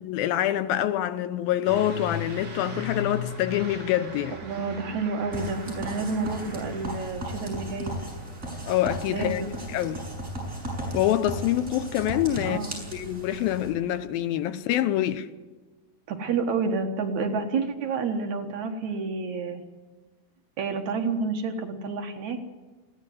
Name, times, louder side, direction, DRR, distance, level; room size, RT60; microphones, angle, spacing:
voice 1, 0.0-4.4 8.7-10.0 10.9-12.6 12.9-15.3, left 12 dB, 85° left, 2.7 m, -26 dB
Truck / Accelerating revving vroom, 1.6-9.6, left 2 dB, 35° right, 3.6 m, -39 dB
voice 2, 4.4-8.0 9.1-9.5 12.4-12.8 16.1-19.6 20.6-22.4, right 4 dB, 60° right, 2.4 m, -29 dB
sound 1, 5.3-13.7, right 1 dB, 20° right, 7.0 m, -36 dB
22.0 x 16.5 x 7.9 m
omnidirectional pair, 4.2 m